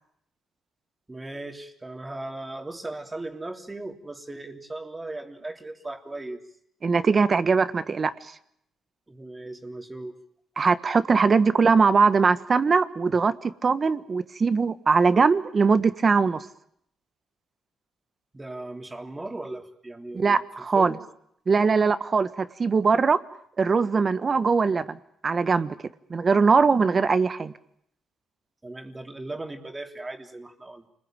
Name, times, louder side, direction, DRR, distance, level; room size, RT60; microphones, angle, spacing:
voice 1, 1.1-6.4 9.1-10.1 18.3-20.4 20.7-21.0 28.6-30.8, right 2 dB, 15° right, 4 dB, 3.3 m, -37 dB
voice 2, 6.8-8.3 10.6-16.4 20.1-20.9 21.5-23.2 23.6-25.0 25.2-25.8 26.1-27.5, right 5 dB, 40° right, 12 dB, 1.4 m, -21 dB
29.0 x 21.0 x 9.1 m, 0.72 s
cardioid pair, 90°, 0 cm